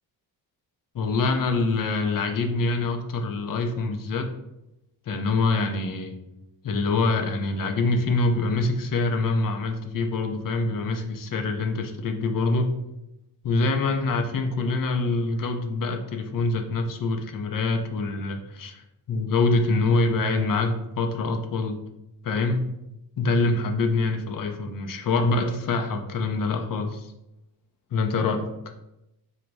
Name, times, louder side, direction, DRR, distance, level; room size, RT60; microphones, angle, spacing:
voice 1, 0.9-4.3 5.1-6.1 6.6-12.7 13.4-21.8 22.2-22.6 23.2-27.1 27.9-28.5, left 3 dB, 50° left, 5 dB, 0.7 m, -25 dB
4.0 x 2.2 x 4.5 m, 0.89 s
cardioid pair, 85°, 44 cm